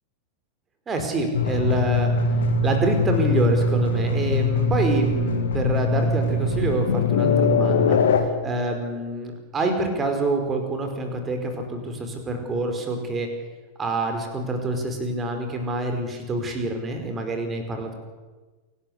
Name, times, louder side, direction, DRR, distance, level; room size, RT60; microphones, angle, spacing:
voice 1, 0.9-2.1 2.6-8.0 8.4-13.3 13.8-17.9, right 2 dB, 20° right, 5 dB, 5.0 m, -26 dB
sound 1, 1.3-8.2, left 3 dB, 60° left, 2.8 m, -22 dB
28.0 x 12.5 x 8.3 m, 1.3 s
figure-of-eight pair, 90°, 0 cm